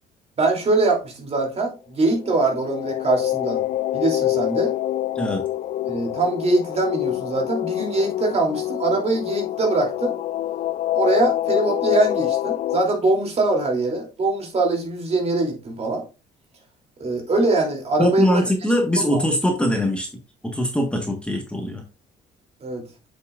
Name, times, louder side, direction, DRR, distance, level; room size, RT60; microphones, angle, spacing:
voice 1, 0.4-3.6 3.9-4.7 5.9-10.1 10.9-16.0 17.0-18.4 19.1-19.2 22.6-22.8, right 2 dB, 40° right, 0 dB, 3.1 m, -22 dB
sound 1, 2.1-12.8, left 13 dB, 50° left, 0.4 m, -26 dB
voice 2, 18.0-20.1 20.4-21.8, equal, 5° left, 2 dB, 1.5 m, -22 dB
7.5 x 7.1 x 2.5 m, 0.31 s
cardioid pair, 110°, 17 cm